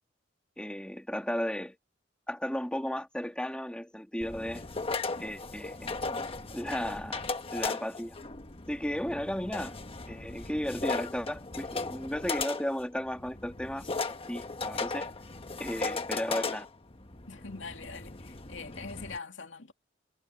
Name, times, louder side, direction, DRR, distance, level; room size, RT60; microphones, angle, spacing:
voice 1, 0.6-1.8 2.3-4.7 5.2-6.2 6.5-8.2 8.7-9.8 10.1-15.1 15.6-16.7, equal, 5° left, 1.8 m, -35 dB
sound 1, 4.2-19.2, left 3 dB, 30° left, 1.3 m, -37 dB
voice 2, 17.3-19.7, left 4 dB, 80° left, 2.7 m, -43 dB
head